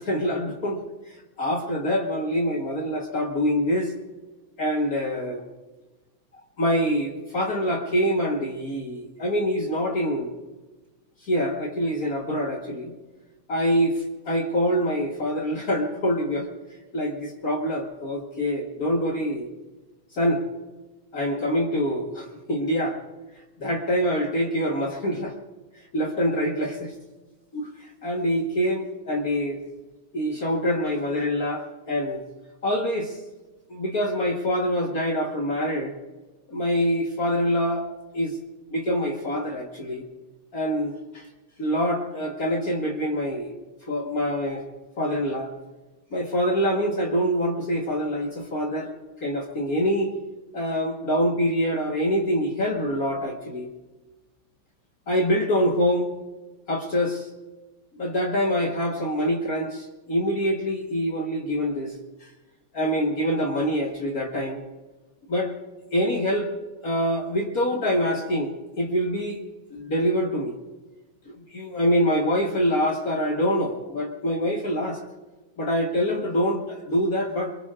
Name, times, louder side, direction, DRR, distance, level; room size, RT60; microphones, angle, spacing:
voice 1, 0.0-3.9 4.6-5.4 6.6-10.3 11.2-12.9 13.5-16.5 16.9-19.5 20.1-20.4 21.1-23.0 23.6-25.3 25.9-26.9 27.5-29.6 30.1-32.2 32.6-33.2 33.7-36.0 36.5-37.9 38.1-38.4 38.7-40.0 40.5-41.3 41.6-44.7 45.0-45.5 46.1-48.9 49.2-50.1 50.5-53.7 55.1-56.1 56.7-57.3 58.0-61.9 62.2-62.3 62.7-64.7 65.3-65.5 65.9-66.5 66.8-69.4 69.7-70.6 71.3-75.0 75.6-77.5, equal, 55° left, 1 dB, 1.0 m, -25 dB
23.0 x 22.5 x 2.4 m, 1.2 s
omnidirectional pair, 3.5 m